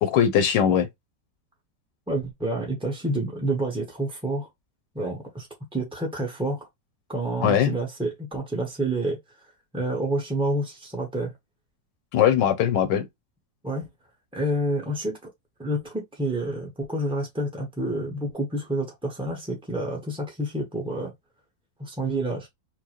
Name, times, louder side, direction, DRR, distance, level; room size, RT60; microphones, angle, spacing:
voice 1, 0.0-0.9 7.4-7.7 12.1-13.1, left 9 dB, 80° left, 1.2 m, -20 dB
voice 2, 2.1-4.5 4.9-5.5 5.7-6.7 7.1-9.2 9.7-11.3 13.6-13.9 14.3-15.3 15.6-21.1 21.8-22.5, right 1 dB, 10° right, 0.3 m, -28 dB
4.5 x 2.1 x 2.9 m
omnidirectional pair, 1.9 m